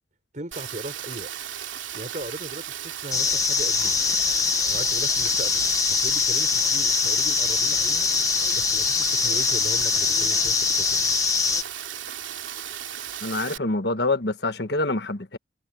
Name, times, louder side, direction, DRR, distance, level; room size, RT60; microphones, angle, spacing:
voice 1, 0.3-1.3 1.9-4.0 4.7-5.6 5.9-8.1 8.5-11.1, right 1 dB, 40° right, 4.8 m, -38 dB
Rain, 0.5-13.6, right 10 dB, 85° right, 3.2 m, -36 dB
sound 1, 3.1-11.6, left 5 dB, 20° left, 1.3 m, -23 dB
voice 2, 13.2-15.4, left 2 dB, 65° left, 1.4 m, -26 dB
head